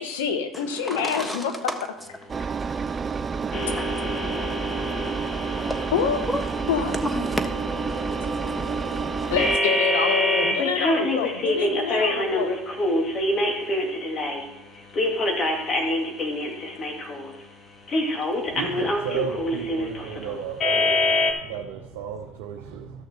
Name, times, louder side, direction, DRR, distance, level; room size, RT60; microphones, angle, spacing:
voice 1, 0.0-1.5 5.9-6.2 6.7-6.9 9.3-12.5, left 7 dB, 80° left, 8 dB, 1.1 m, -26 dB
voice 2, 0.5-1.9 2.3-3.0 3.7-3.9 5.7-5.9 6.3-6.4 7.0-7.5 7.9-8.2 8.6-9.0, left 1 dB, 10° left, 7 dB, 1.4 m, -32 dB
Engine, 2.3-9.6, right 5 dB, 30° right, 0.3 m, -29 dB
sound 1, 3.5-14.4 14.9-17.3 17.9-21.3, left 1 dB, 40° left, 2.1 m, -26 dB
voice 3, 18.5-23.0, right 7 dB, 75° right, 2 dB, 0.8 m, -34 dB
13.5 x 6.4 x 4.3 m, 0.88 s
hypercardioid pair, 70°, 0 cm